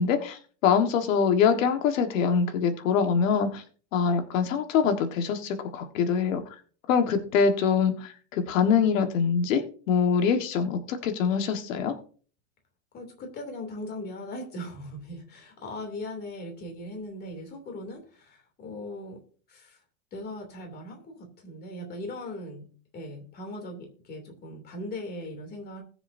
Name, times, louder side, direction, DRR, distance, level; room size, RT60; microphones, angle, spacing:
voice 1, 0.0-3.6 3.9-6.4 6.9-9.6 9.9-11.9, left 6 dB, 85° left, 6 dB, 1.6 m, -24 dB
voice 2, 12.9-19.2 19.5-19.8 20.1-25.8, left 1 dB, 25° left, 4 dB, 2.8 m, -39 dB
20.0 x 7.0 x 2.7 m, 0.42 s
supercardioid pair, 165°, 38 cm